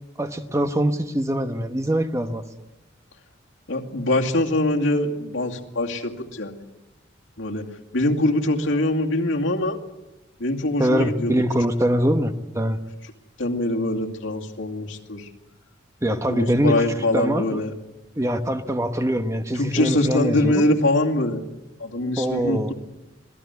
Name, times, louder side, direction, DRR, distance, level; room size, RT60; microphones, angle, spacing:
voice 1, 0.2-2.4 10.8-12.8 16.0-16.8 17.1-17.6 18.2-20.6 22.2-22.7, equal, 15° right, 7 dB, 1.2 m, -23 dB
voice 2, 3.7-6.6 7.4-7.6 7.9-9.8 10.4-11.4 13.4-15.3 16.1-17.7 19.5-21.5 21.8-22.7, left 1 dB, 80° left, 1 dB, 2.4 m, -23 dB
26.0 x 18.0 x 8.2 m, 1.0 s
head